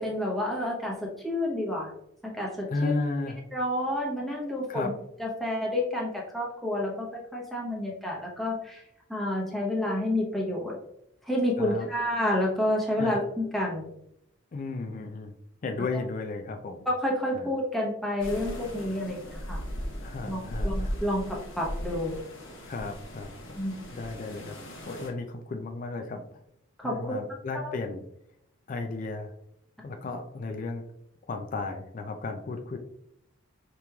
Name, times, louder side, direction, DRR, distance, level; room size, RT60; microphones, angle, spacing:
voice 1, 0.0-1.9 2.3-2.9 3.5-4.9 5.2-8.8 9.1-10.8 11.2-13.9 16.9-19.6 20.3-22.2 23.6-24.0 26.8-27.2, left 1 dB, ahead, -3 dB, 0.9 m, -29 dB
voice 2, 2.7-3.4 4.7-4.9 11.6-11.9 13.0-13.2 14.5-15.3 15.6-16.9 17.3-17.5 20.0-21.0 22.7-23.3 23.9-24.6 24.9-26.4 26.8-28.0 28.7-29.3 29.8-30.8 31.3-32.8, left 3 dB, 40° left, 4 dB, 0.3 m, -34 dB
sound 1, 18.2-25.1, equal, 65° left, 1.0 m, -37 dB
5.1 x 3.0 x 2.3 m, 0.76 s
head